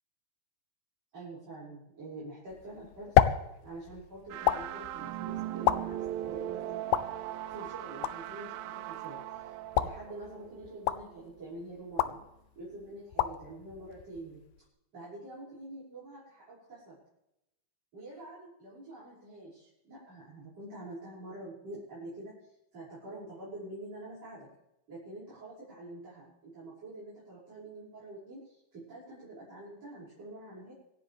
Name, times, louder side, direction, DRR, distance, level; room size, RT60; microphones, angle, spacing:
voice 1, 1.1-3.2 3.6-6.8 7.5-12.2 12.6-14.4 14.9-17.0 17.9-22.3 22.7-24.5 24.9-30.7, right 2 dB, 45° right, -8 dB, 7.2 m, -46 dB
sound 1, 2.5-14.7, left 13 dB, 80° left, 2.3 m, -33 dB
sound 2, 4.3-11.2, right 13 dB, 85° right, 2.4 m, -39 dB
26.0 x 10.0 x 3.5 m, 0.86 s
omnidirectional pair, 4.1 m